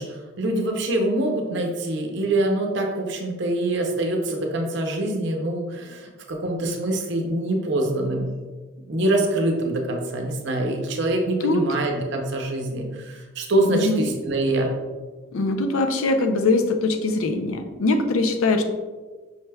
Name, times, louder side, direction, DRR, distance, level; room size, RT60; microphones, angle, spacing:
voice 1, 0.0-8.3 8.9-14.7, right 1 dB, 60° right, 2 dB, 0.6 m, -24 dB
voice 2, 13.7-14.1 15.3-18.6, left 3 dB, 85° left, 6 dB, 0.5 m, -22 dB
5.5 x 3.3 x 2.2 m, 1.4 s
head